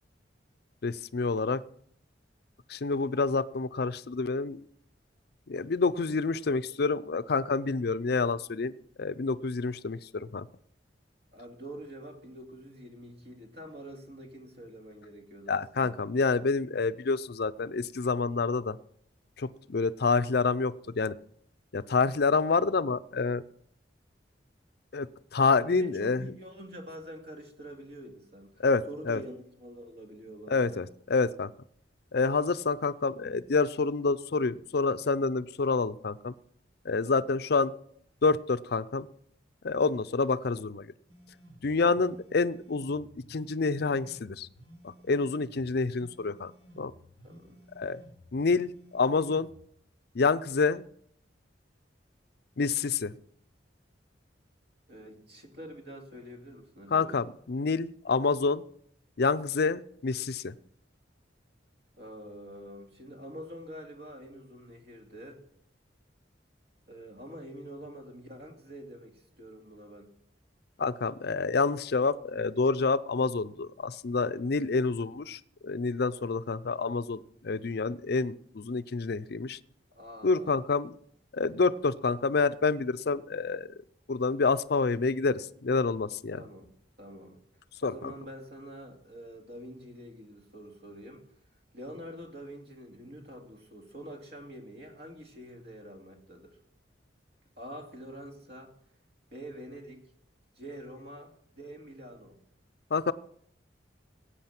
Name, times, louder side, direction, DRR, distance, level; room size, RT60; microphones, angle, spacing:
voice 1, 0.8-1.6 2.7-4.6 5.5-8.7 9.0-10.5 15.5-18.8 19.4-21.1 21.7-23.4 24.9-26.2 28.6-29.2 30.5-31.5 32.1-36.3 36.8-37.7 38.2-39.1 39.6-40.9 41.6-44.5 44.8-46.5 46.8-46.9 47.8-48.0 48.3-49.5 50.1-50.8 52.6-53.1 56.9-58.6 59.2-60.5 70.8-79.6 80.2-80.9 81.3-83.7 84.1-86.4 87.8-88.1 102.9-103.1, left 4 dB, 60° left, 15 dB, 0.5 m, -28 dB
voice 2, 11.3-16.0 25.6-30.8 37.1-37.4 41.8-42.1 47.2-47.6 54.9-57.2 62.0-65.4 66.9-70.1 79.9-80.6 86.3-86.7 87.0-87.4 87.8-91.3 91.7-96.6 97.6-98.7 99.3-100.0 100.6-102.4, equal, 60° right, 3 dB, 2.6 m, -46 dB
sound 1, 41.1-49.6, equal, 80° right, 5.7 m, -55 dB
16.5 x 8.4 x 5.9 m, 0.67 s
head